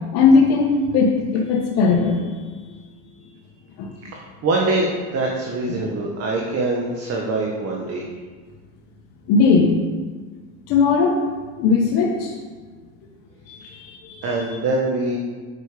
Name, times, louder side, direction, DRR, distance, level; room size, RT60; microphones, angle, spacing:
voice 1, 0.1-2.2 3.8-3.9 9.3-9.8 10.7-11.2 11.6-12.3 13.5-14.2, left 4 dB, 55° left, -2 dB, 1.5 m, -18 dB
voice 2, 4.0-8.1 14.2-15.2, right 2 dB, 35° right, -1 dB, 1.4 m, -24 dB
8.5 x 6.6 x 5.1 m, 1.4 s
supercardioid pair, 125°, 43 cm